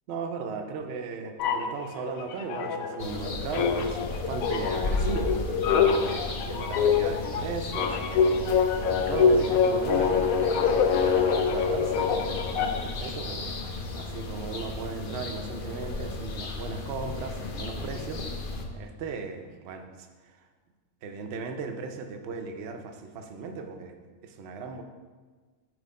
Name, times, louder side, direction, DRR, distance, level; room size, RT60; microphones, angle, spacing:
voice 1, 0.1-18.2 18.7-20.5 21.0-24.0 24.2-24.8, right 5 dB, 60° right, 5 dB, 0.8 m, -37 dB
sound 1, 1.4-3.2 3.5-13.0, left 6 dB, 85° left, 1.0 m, -25 dB
sound 2, 3.0-18.7, left 3 dB, 50° left, 0.7 m, -34 dB
7.7 x 3.2 x 5.1 m, 1.4 s
omnidirectional pair, 1.4 m